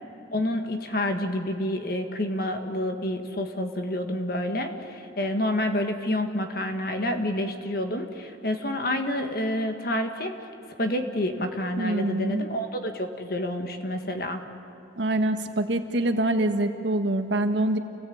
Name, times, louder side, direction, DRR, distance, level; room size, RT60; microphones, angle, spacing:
voice 1, 0.3-10.3 10.8-14.4, left 1 dB, 50° left, 6 dB, 1.7 m, -28 dB
voice 2, 11.8-12.5 15.0-17.8, right 1 dB, 75° right, 6 dB, 1.5 m, -25 dB
28.5 x 17.5 x 8.7 m, 3.0 s
head